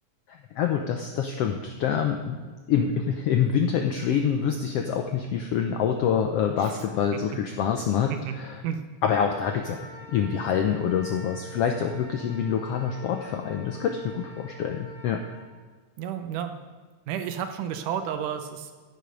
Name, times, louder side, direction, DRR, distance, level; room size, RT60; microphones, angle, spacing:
voice 1, 0.3-2.4 2.7-8.6 9.0-15.2, left 7 dB, 85° left, 5 dB, 1.3 m, -26 dB
Wind instrument woodwind instrument, 9.4-15.4, left 1 dB, 70° left, 3.6 m, -46 dB
voice 2, 16.0-16.6 17.1-18.7, right 9 dB, 85° right, 7 dB, 2.5 m, -31 dB
15.0 x 8.3 x 5.2 m, 1.4 s
omnidirectional pair, 3.6 m